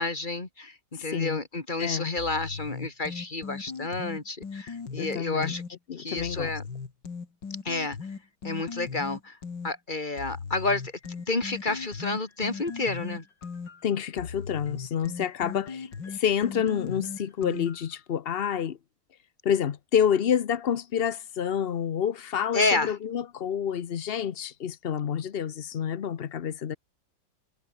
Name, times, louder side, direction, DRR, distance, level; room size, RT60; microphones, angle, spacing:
voice 1, 0.0-5.6 6.0-6.6 7.6-8.0 8.4-9.4 9.6-10.8 11.3-13.2 22.5-22.9, left 3 dB, 25° left, 2.7 m, -30 dB
voice 2, 1.1-1.4 1.8-2.1 5.0-5.5 5.9-6.5 13.8-18.8 19.4-26.8, left 8 dB, 55° left, 0.6 m, -28 dB
sound 1, 2.2-5.7 6.2-9.7 10.2-18.0, left 5 dB, 70° left, 3.4 m, -38 dB
omnidirectional pair, 2.0 m